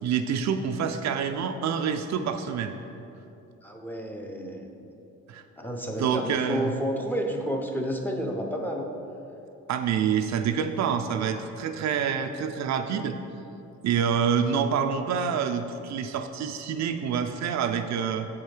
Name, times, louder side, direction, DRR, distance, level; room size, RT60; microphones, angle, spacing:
voice 1, 0.0-2.7 5.3-5.4 6.0-6.7 9.7-13.2 13.8-18.3, right 7 dB, 65° right, 7 dB, 0.5 m, -27 dB
voice 2, 3.6-4.7 5.6-8.9, equal, 5° left, 2 dB, 0.7 m, -30 dB
7.5 x 4.9 x 4.5 m, 2.9 s
cardioid pair, 90°, 30 cm